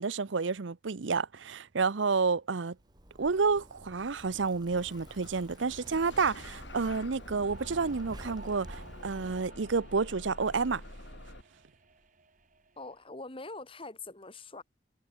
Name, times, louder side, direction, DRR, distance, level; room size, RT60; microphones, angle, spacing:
voice 1, 0.0-2.8 3.2-10.8, right 4 dB, 80° right, 0.7 m, -30 dB
Zipper (clothing), 2.8-9.4, right 1 dB, 20° right, 2.2 m, -51 dB
Bus / Engine starting, 4.7-11.4, left 1 dB, 70° left, 4.8 m, -48 dB
sound 1, 7.5-12.9, right 2 dB, 45° right, 4.9 m, -52 dB
voice 2, 12.8-14.6, left 3 dB, 30° left, 2.3 m, -43 dB
head